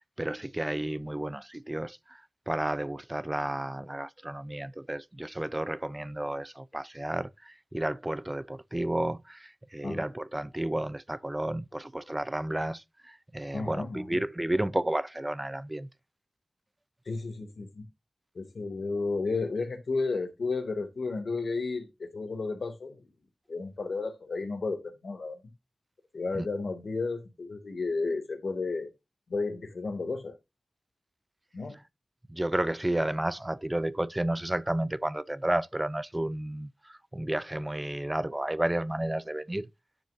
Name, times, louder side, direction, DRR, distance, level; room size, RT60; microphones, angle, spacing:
voice 1, 0.0-15.9 26.3-26.5 32.3-39.7, right 1 dB, 20° right, 0.6 m, -32 dB
voice 2, 13.5-14.2 17.1-17.8 18.3-23.0 23.5-25.4 26.1-28.9 29.3-30.3 31.5-31.8, left 3 dB, 75° left, 2.3 m, -32 dB
10.0 x 6.8 x 2.7 m
cardioid pair, 55°, 0 cm